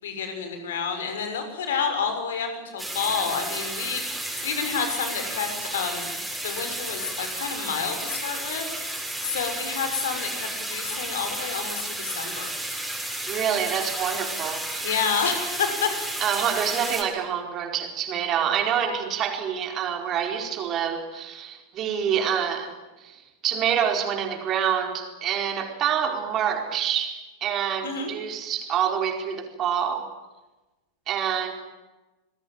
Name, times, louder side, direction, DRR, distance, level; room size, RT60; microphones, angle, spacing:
voice 1, 0.0-6.1 6.4-8.9 9.2-12.5 14.8-15.9 27.8-28.1, left 6 dB, 60° left, 6 dB, 6.2 m, -29 dB
sound 1, 2.8-17.0, right 1 dB, ahead, 7.3 m, -32 dB
voice 2, 13.3-14.9 16.2-30.1 31.1-31.5, right 8 dB, 30° right, 4 dB, 4.7 m, -27 dB
28.5 x 21.0 x 9.2 m, 1.1 s
figure-of-eight pair, 90°, 0 cm